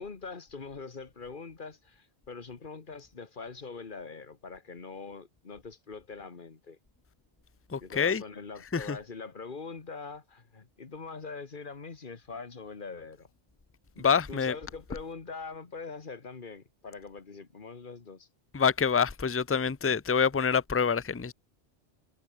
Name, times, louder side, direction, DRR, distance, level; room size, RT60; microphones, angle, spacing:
voice 1, 0.0-6.8 7.8-13.3 13.9-18.3, left 4 dB, 50° left, 1.7 m, -43 dB
voice 2, 7.7-8.2 8.7-9.0 14.0-14.5 18.5-21.3, left 6 dB, 20° left, 0.4 m, -26 dB
omnidirectional pair, 1.1 m